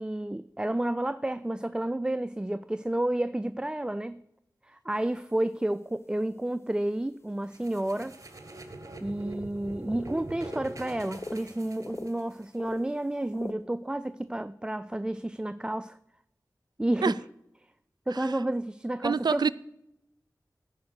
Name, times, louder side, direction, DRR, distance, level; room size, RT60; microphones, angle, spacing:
voice 1, 0.0-4.2 4.7-8.2 9.0-16.0 16.8-17.2 18.1-19.5, right 1 dB, 10° right, 0.3 m, -30 dB
sound 1, 4.9-5.0 5.2-5.4 5.6-5.8 6.2-6.3 7.5-7.6 8.0-8.1 8.9-9.0 9.1-9.6 9.9-10.7 11.1-12.2 12.5-13.5, left 2 dB, 40° left, 0.7 m, -42 dB
sound 2, 7.5-12.4, right 2 dB, 50° right, 1.5 m, -43 dB
voice 2, 19.0-19.5, right 5 dB, 90° right, 0.4 m, -25 dB
14.0 x 5.2 x 6.4 m
wide cardioid pair, 75°, 7 cm